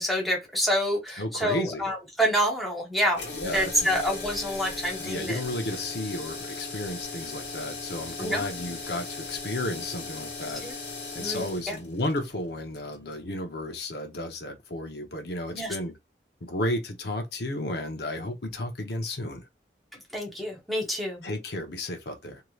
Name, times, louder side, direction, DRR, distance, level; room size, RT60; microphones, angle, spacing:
voice 1, 0.0-5.4 8.2-8.5 10.6-10.7 11.2-11.8 15.5-15.7 20.1-21.2, equal, ahead, 0.9 m, -27 dB
voice 2, 1.2-1.9 3.3-4.0 5.0-10.7 11.1-16.0 16.4-19.5 21.2-22.4, left 1 dB, 70° left, 0.8 m, -33 dB
sound 1, 3.1-13.2, left 3 dB, 85° left, 1.2 m, -38 dB
3.1 x 2.8 x 2.4 m
head